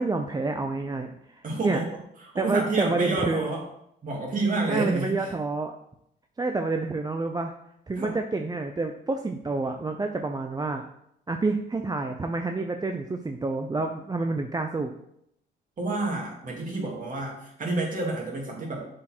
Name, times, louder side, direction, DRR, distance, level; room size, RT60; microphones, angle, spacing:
voice 1, 0.0-1.8 2.4-3.5 4.7-5.8 6.4-7.5 7.9-10.8 11.3-14.9, right 3 dB, 20° right, 4 dB, 0.5 m, -28 dB
voice 2, 1.4-1.9 2.2-3.6 4.0-5.3 8.0-8.1 15.8-18.9, right 2 dB, 45° right, -2 dB, 2.5 m, -29 dB
7.4 x 4.3 x 4.4 m, 0.75 s
cardioid pair, 90°, 20 cm